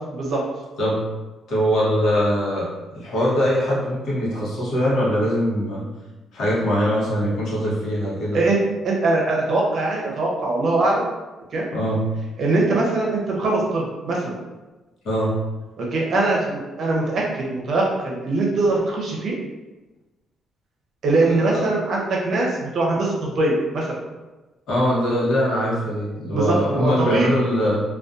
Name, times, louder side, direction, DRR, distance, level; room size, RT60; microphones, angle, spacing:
voice 1, 1.5-5.9 6.3-8.4 11.7-12.0 15.0-15.3 21.3-21.6 24.7-27.8, equal, 70° left, -7 dB, 0.9 m, -22 dB
voice 2, 8.8-11.1 11.5-11.6 12.4-14.4 15.8-19.4 21.0-24.0 26.3-27.3, right 2 dB, 50° right, -3 dB, 0.6 m, -22 dB
2.5 x 2.3 x 2.3 m, 1.2 s
cardioid pair, 140°, 0 cm